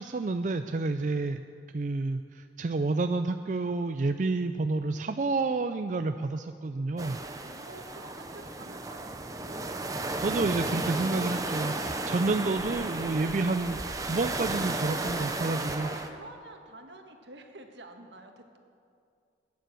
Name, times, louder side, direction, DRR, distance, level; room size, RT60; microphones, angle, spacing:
voice 1, 0.0-1.4 1.7-7.2 10.2-15.9, right 3 dB, 45° right, 8 dB, 0.4 m, -29 dB
sound 1, 7.0-16.1, right 2 dB, 20° right, 0.8 m, -34 dB
voice 2, 7.4-9.8 15.8-18.6, right 1 dB, 75° right, 4 dB, 1.6 m, -49 dB
17.0 x 9.5 x 7.6 m, 2.3 s
head